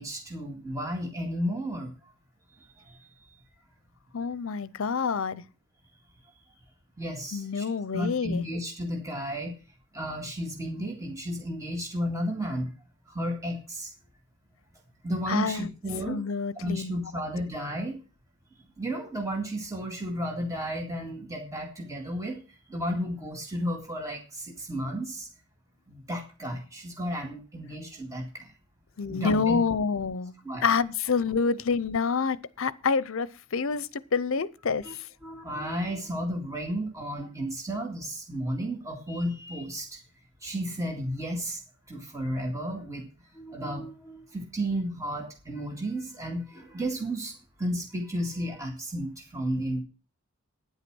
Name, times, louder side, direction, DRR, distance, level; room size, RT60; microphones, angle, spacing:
voice 1, 0.0-1.9 2.9-3.0 7.0-7.7 7.9-9.6 9.9-12.7 13.1-13.9 15.0-16.2 16.6-18.0 18.8-22.4 22.7-25.3 25.9-28.5 29.1-29.6 30.5-30.7 34.8-34.9 35.2-40.0 40.4-41.6 41.9-43.1 43.3-47.3 47.6-49.8, equal, 15° right, 2.0 m, -33 dB
voice 2, 4.1-5.4 7.3-8.5 15.3-15.7 16.1-16.9 29.0-30.3 30.6-35.1, left 5 dB, 65° left, 0.6 m, -27 dB
9.9 x 8.1 x 6.2 m
head